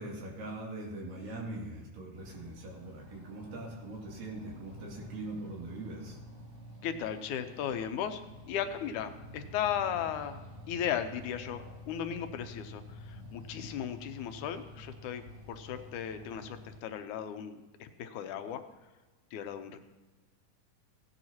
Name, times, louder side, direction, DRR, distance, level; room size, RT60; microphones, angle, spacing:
voice 1, 0.0-6.2, right 2 dB, 80° right, -2 dB, 4.3 m, -42 dB
sound 1, 2.1-16.8, equal, 30° right, 3.7 m, -49 dB
voice 2, 6.8-8.2 8.5-10.4 10.7-15.2 15.5-18.6 19.3-19.8, left 9 dB, 75° left, 8 dB, 2.1 m, -36 dB
16.5 x 11.0 x 2.8 m, 1.2 s
omnidirectional pair, 3.9 m